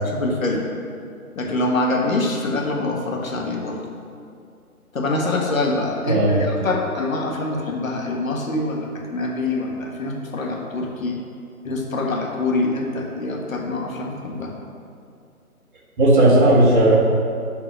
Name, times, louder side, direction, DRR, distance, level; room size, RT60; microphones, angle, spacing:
voice 1, 0.1-0.6 1.3-3.8 4.9-11.2 11.6-14.5, left 2 dB, 60° left, 1 dB, 1.6 m, -25 dB
voice 2, 6.0-6.7 16.0-17.0, right 1 dB, 35° right, -6 dB, 1.8 m, -15 dB
7.1 x 5.2 x 7.1 m, 2.4 s
figure-of-eight pair, 150°, 45 cm